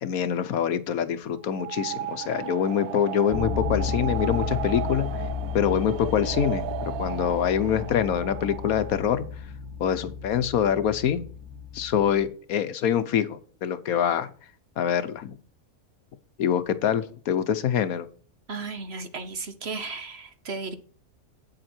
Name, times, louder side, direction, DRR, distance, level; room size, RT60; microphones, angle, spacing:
voice 1, 0.0-5.3 5.5-9.5 9.8-11.2 11.7-14.3 14.8-15.4 16.4-18.1, left 9 dB, 70° left, 13 dB, 1.2 m, -25 dB
sound 1, 1.4-9.1, right 13 dB, 80° right, 1.1 m, -35 dB
sound 2, 3.3-12.3, left 6 dB, 5° right, 2.3 m, -33 dB
voice 2, 18.5-20.7, right 4 dB, 50° right, 9 dB, 1.1 m, -35 dB
8.8 x 7.8 x 4.4 m, 0.41 s
omnidirectional pair, 1.6 m